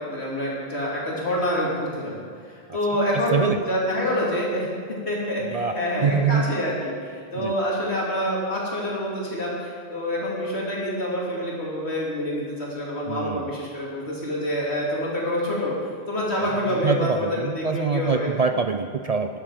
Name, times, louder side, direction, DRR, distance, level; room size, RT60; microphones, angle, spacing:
voice 1, 0.0-6.9 7.3-15.7 16.1-18.3, left 1 dB, 80° left, -4 dB, 3.3 m, -27 dB
voice 2, 3.1-3.6 5.4-6.5 7.3-7.6 13.1-13.5 16.4-19.3, right 5 dB, 50° right, 7 dB, 0.5 m, -25 dB
13.5 x 11.5 x 5.0 m, 2.1 s
omnidirectional pair, 1.1 m